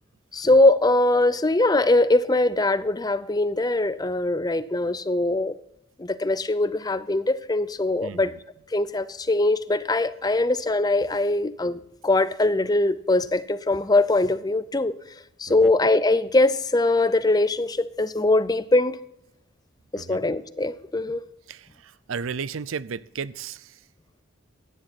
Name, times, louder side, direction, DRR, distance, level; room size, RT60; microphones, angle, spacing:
voice 1, 0.3-5.6 6.0-8.3 8.7-14.9 15.4-19.0 19.9-21.2, left 2 dB, 20° left, 0.5 m, -22 dB
voice 2, 21.5-23.8, right 6 dB, 80° right, 0.5 m, -34 dB
16.5 x 10.5 x 4.2 m
head